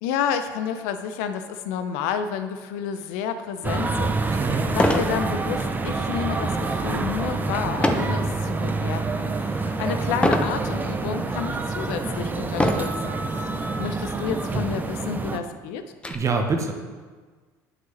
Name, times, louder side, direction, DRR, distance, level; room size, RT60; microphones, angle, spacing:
voice 1, 0.0-4.5 4.7-13.2 13.6-15.8, left 7 dB, 75° left, 9 dB, 0.7 m, -30 dB
sound 1, 3.6-15.4, right 3 dB, 20° right, 0.7 m, -27 dB
voice 2, 4.3-4.7 9.7-10.0 16.1-16.7, right 4 dB, 35° right, 4 dB, 1.1 m, -26 dB
sound 2, 4.7-5.2 5.6-5.9 7.8-8.2 8.8-9.2 10.2-10.6 11.3-11.4 12.5-13.0 14.0-14.2 14.5-14.6 15.0-16.1, left 1 dB, 10° left, 0.8 m, -23 dB
9.4 x 6.3 x 4.0 m, 1.4 s
hypercardioid pair, 75°, 9 cm